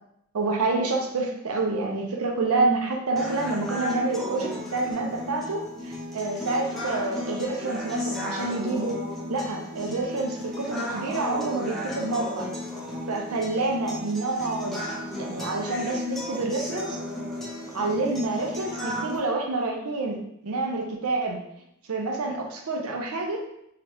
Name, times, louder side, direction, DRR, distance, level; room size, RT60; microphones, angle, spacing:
voice 1, 0.3-8.9 9.3-12.5 13.1-14.8 15.2-17.0 17.7-20.2 20.4-21.4 21.9-23.4, right 3 dB, 80° right, 2 dB, 0.6 m, -28 dB
sound 1, 3.2-19.2, left 1 dB, ahead, 0.4 m, -34 dB
2.8 x 2.4 x 3.3 m, 0.77 s
head